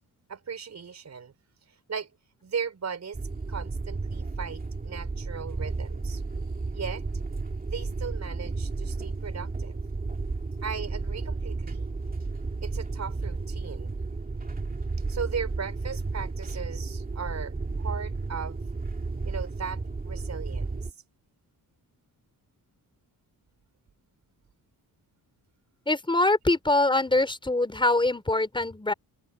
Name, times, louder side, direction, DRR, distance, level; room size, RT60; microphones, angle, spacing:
voice 1, 0.3-1.3 1.9-2.1 2.4-3.2 3.5-6.2 6.7-7.0 7.6-9.8 10.6-11.9 12.6-13.9 15.1-18.6 19.2-20.9, right 6 dB, 45° right, 4.9 m, -37 dB
sound 1, 3.1-20.9, right 3 dB, 25° right, 2.4 m, -33 dB
voice 2, 25.9-28.9, left 2 dB, 15° left, 5.0 m, -24 dB
open air
wide cardioid pair, 175°, 38 cm